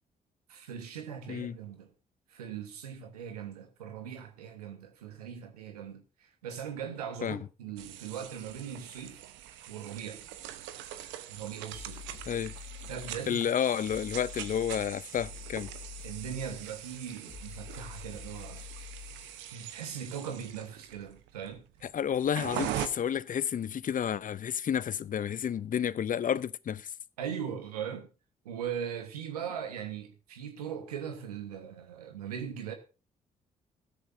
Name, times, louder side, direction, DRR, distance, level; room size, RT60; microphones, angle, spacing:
voice 1, 0.5-1.9 2.3-6.0 6.4-9.2 9.7-10.2 11.3-12.1 12.8-13.4 16.0-18.7 19.5-21.6 27.2-28.1 28.4-32.7, right 8 dB, 90° right, 1.4 m, -39 dB
sound 1, 7.8-22.9, right 12 dB, 75° right, 1.0 m, -42 dB
sound 2, 11.7-19.4, left 8 dB, 60° left, 2.7 m, -47 dB
voice 2, 13.3-15.7 21.8-26.9, left 8 dB, 45° left, 0.6 m, -31 dB
15.5 x 13.0 x 2.7 m
hypercardioid pair, 40°, 19 cm